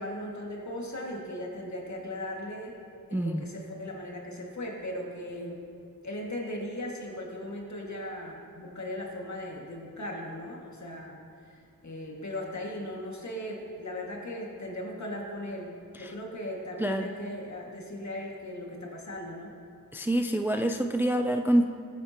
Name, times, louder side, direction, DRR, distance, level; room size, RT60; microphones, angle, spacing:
voice 1, 0.0-2.8 3.1-5.6 6.0-15.7 16.0-19.6, left 1 dB, 50° left, -1 dB, 2.0 m, -38 dB
voice 2, 3.1-3.4 16.0-16.1 16.8-17.1 19.9-21.7, right 1 dB, 5° right, 6 dB, 0.4 m, -26 dB
14.5 x 8.1 x 2.9 m, 2.4 s
cardioid pair, 50°, 36 cm